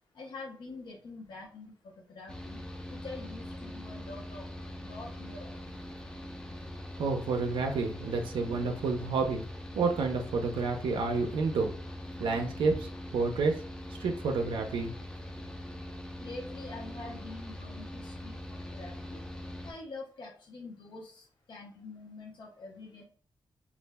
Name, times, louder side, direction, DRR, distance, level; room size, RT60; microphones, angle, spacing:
voice 1, 0.2-2.6 3.0-4.4 4.8-5.6 16.2-18.4 18.7-19.2 19.6-23.0, left 3 dB, 65° left, -1 dB, 0.5 m, -45 dB
Mechanical fan, 2.3-19.7, left 1 dB, 10° left, 0.3 m, -42 dB
voice 2, 7.0-9.4 9.7-11.7 12.2-13.6 14.0-14.9, right 4 dB, 90° right, 3 dB, 0.4 m, -29 dB
2.3 x 2.0 x 3.3 m, 0.42 s
wide cardioid pair, 135°, 9 cm